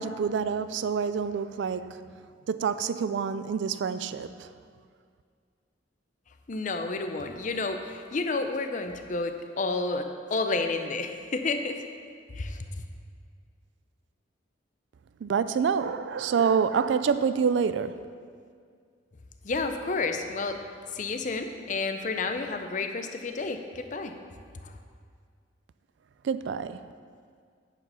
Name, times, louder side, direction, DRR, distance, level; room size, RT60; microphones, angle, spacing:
voice 1, 0.0-2.1 2.5-4.5 15.2-18.0 26.2-26.8, right 6 dB, 70° right, 12 dB, 0.3 m, -27 dB
voice 2, 6.5-10.1 10.3-11.8 12.3-12.6 19.4-20.6 20.9-24.1 24.6-24.7, left 3 dB, 40° left, 6 dB, 0.6 m, -30 dB
9.7 x 5.0 x 5.5 m, 2.1 s
head